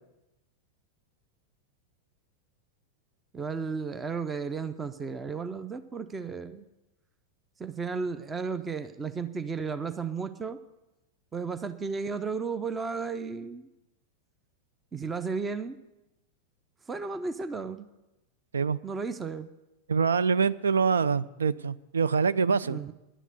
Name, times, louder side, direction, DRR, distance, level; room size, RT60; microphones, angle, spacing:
voice 1, 3.3-6.7 7.6-10.6 11.3-13.7 14.9-15.8 16.9-17.9 18.8-19.5 22.6-22.9, right 5 dB, 15° right, 12 dB, 0.6 m, -34 dB
voice 2, 19.9-22.8, right 5 dB, 70° right, 17 dB, 0.3 m, -25 dB
11.0 x 9.2 x 8.0 m, 0.98 s
figure-of-eight pair, 90°, 0 cm